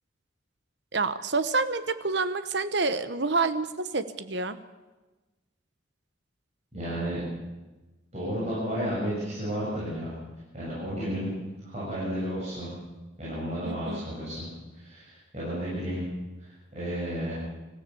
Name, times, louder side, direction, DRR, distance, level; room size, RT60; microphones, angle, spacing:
voice 1, 0.9-4.6 13.6-14.1, right 3 dB, 60° right, 12 dB, 1.0 m, -28 dB
voice 2, 6.7-7.2 8.1-10.1 10.5-11.3 11.6-12.7 13.2-14.5 14.7-16.0 16.4-17.4, equal, 35° right, -8 dB, 7.6 m, -32 dB
25.0 x 15.5 x 7.1 m, 1.2 s
head